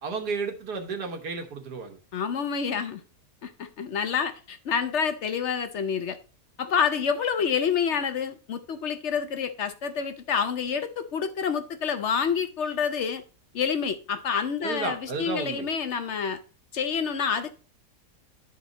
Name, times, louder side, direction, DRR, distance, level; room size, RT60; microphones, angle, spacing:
voice 1, 0.0-2.0 14.6-15.7, right 4 dB, 75° right, 1.8 m, -32 dB
voice 2, 2.1-3.0 3.4-6.2 6.6-13.2 13.5-16.4 16.7-17.6, left 6 dB, 60° left, 0.7 m, -28 dB
11.5 x 4.2 x 3.9 m
omnidirectional pair, 1.8 m